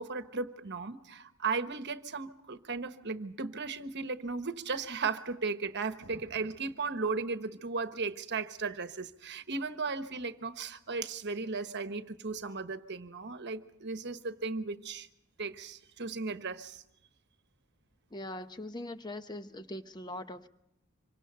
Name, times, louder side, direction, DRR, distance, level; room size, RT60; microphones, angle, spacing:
voice 1, 0.0-15.1 15.4-16.8, right 4 dB, 55° right, 1.2 m, -36 dB
voice 2, 18.1-20.5, left 1 dB, 20° left, 0.9 m, -41 dB
26.0 x 24.5 x 5.6 m
head